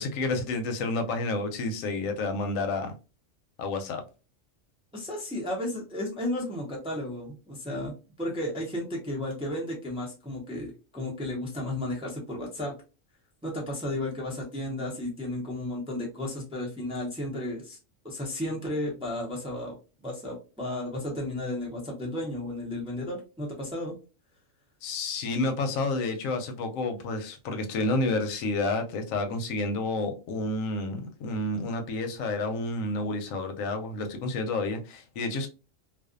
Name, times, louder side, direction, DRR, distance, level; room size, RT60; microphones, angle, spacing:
voice 1, 0.0-2.9 3.6-4.0 24.8-35.5, left 2 dB, 85° left, 1.0 m, -30 dB
voice 2, 4.9-7.9 8.2-12.7 13.4-17.8 18.0-19.8 20.0-23.9, left 1 dB, 10° right, 0.4 m, -33 dB
2.5 x 2.3 x 2.4 m
omnidirectional pair, 1.3 m